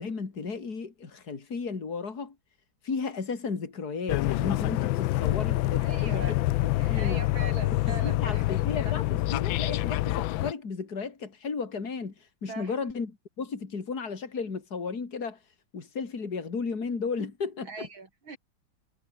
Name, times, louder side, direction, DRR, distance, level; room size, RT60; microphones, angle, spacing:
voice 1, 0.0-2.4 2.8-7.2 7.9-12.1 12.4-15.4 15.7-17.9, left 5 dB, 45° left, 3.5 m, -34 dB
sound 1, 4.1-10.5, left 16 dB, 75° left, 1.3 m, -26 dB
voice 2, 5.8-6.4 6.8-8.4 8.8-8.9 12.5-12.7 17.7-18.4, right 4 dB, 70° right, 4.9 m, -40 dB
omnidirectional pair, 2.3 m